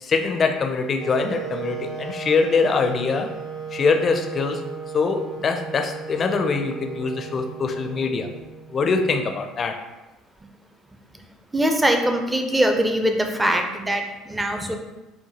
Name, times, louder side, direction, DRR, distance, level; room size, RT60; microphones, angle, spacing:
voice 1, 0.0-3.3 3.7-4.7 4.9-8.3 8.7-9.8, left 4 dB, 40° left, 5 dB, 0.4 m, -23 dB
Wind instrument woodwind instrument, 1.0-8.9, right 5 dB, 50° right, 1.0 m, -35 dB
voice 2, 11.5-14.8, right 1 dB, 10° right, 4 dB, 0.5 m, -22 dB
4.5 x 2.2 x 2.8 m, 1.1 s
hypercardioid pair, 70°, 0 cm